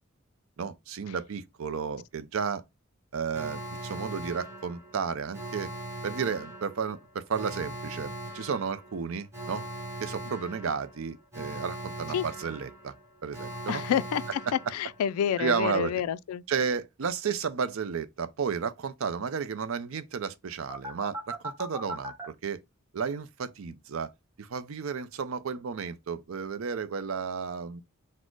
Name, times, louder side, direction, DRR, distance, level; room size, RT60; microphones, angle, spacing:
voice 1, 0.6-2.6 3.1-5.7 6.0-9.6 10.0-12.9 13.2-13.8 15.4-15.9 16.5-22.6 22.9-24.1 24.4-27.8, right 6 dB, 75° right, 0.5 m, -32 dB
Alarm, 3.3-15.2 20.7-22.3, right 1 dB, 10° right, 1.2 m, -40 dB
voice 2, 13.7-16.4, left 9 dB, 85° left, 0.3 m, -29 dB
4.2 x 2.1 x 4.6 m
head